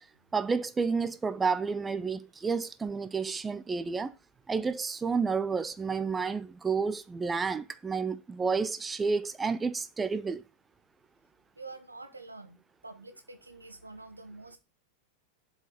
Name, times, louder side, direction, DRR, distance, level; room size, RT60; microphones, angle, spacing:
voice 1, 0.3-4.1 4.5-10.4, right 5 dB, 15° right, 0.4 m, -30 dB
voice 2, 11.5-14.6, right 3 dB, 80° right, 1.5 m, -47 dB
7.8 x 4.7 x 7.0 m
figure-of-eight pair, 90°, 0 cm